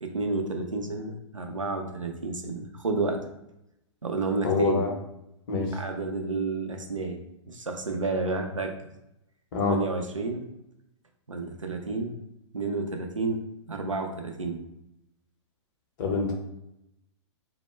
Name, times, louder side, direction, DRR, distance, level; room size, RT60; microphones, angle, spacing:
voice 1, 0.0-3.2 4.0-4.8 5.7-7.2 7.5-8.7 9.6-10.4 11.3-12.1 12.5-14.6, right 3 dB, 90° right, 4 dB, 0.4 m, -30 dB
voice 2, 4.4-4.9 5.5-5.8 9.5-9.8 16.0-16.3, left 4 dB, 40° left, 0 dB, 0.7 m, -26 dB
2.1 x 2.0 x 3.1 m, 0.84 s
figure-of-eight pair, 110°, 16 cm